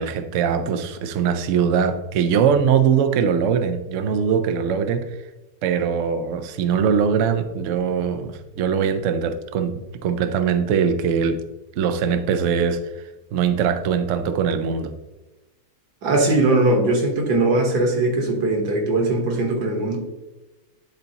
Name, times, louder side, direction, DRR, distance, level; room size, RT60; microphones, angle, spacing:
voice 1, 0.0-5.1 5.6-9.7 10.0-11.4 11.8-13.0 13.3-14.9, right 7 dB, 90° right, 8 dB, 0.6 m, -21 dB
voice 2, 16.0-20.0, right 2 dB, 60° right, 1 dB, 1.7 m, -20 dB
10.5 x 4.0 x 2.9 m, 1.1 s
omnidirectional pair, 2.0 m